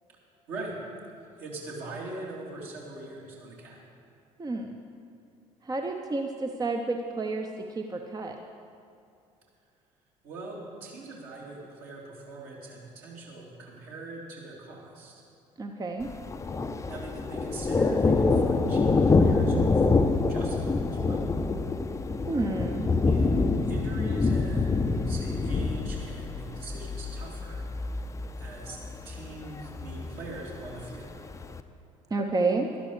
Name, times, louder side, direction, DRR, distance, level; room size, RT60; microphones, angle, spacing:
voice 1, 0.5-0.8 1.4-3.8 10.2-15.2 16.9-21.3 23.0-23.4 23.6-27.7 28.3-28.8 29.0-31.2, right 2 dB, 60° right, -4 dB, 3.1 m, -42 dB
voice 2, 4.4-4.8 5.6-7.5 7.8-8.4 15.6-16.1 22.3-22.9 32.1-32.7, right 3 dB, 20° right, 4 dB, 0.8 m, -30 dB
Thunder, 16.0-31.6, left 3 dB, 15° left, 0.6 m, -26 dB
12.5 x 11.5 x 4.9 m, 2.5 s
figure-of-eight pair, 55°, 18 cm